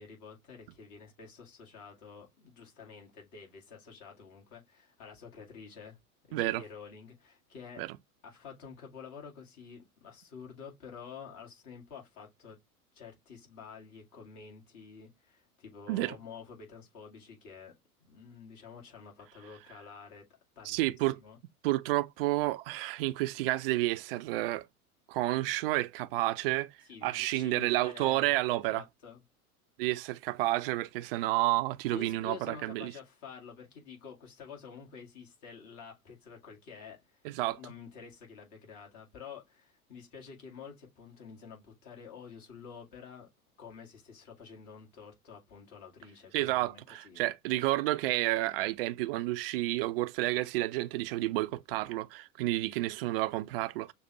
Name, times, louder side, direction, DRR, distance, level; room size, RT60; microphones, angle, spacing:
voice 1, 0.0-6.0 6.3-7.8 8.2-12.6 12.9-17.7 18.0-20.3 20.6-21.4 26.9-28.4 28.7-29.2 31.9-37.2 37.5-43.3 43.6-47.2, left 6 dB, 40° left, 2.0 m, -49 dB
voice 2, 6.3-6.6 7.8-8.0 15.9-16.1 20.6-21.2 21.6-24.7 25.1-26.7 27.0-28.8 29.8-32.9 37.2-37.6 46.3-53.9, right 17 dB, 40° right, 0.5 m, -30 dB
6.5 x 2.3 x 2.9 m
figure-of-eight pair, 85°, 44 cm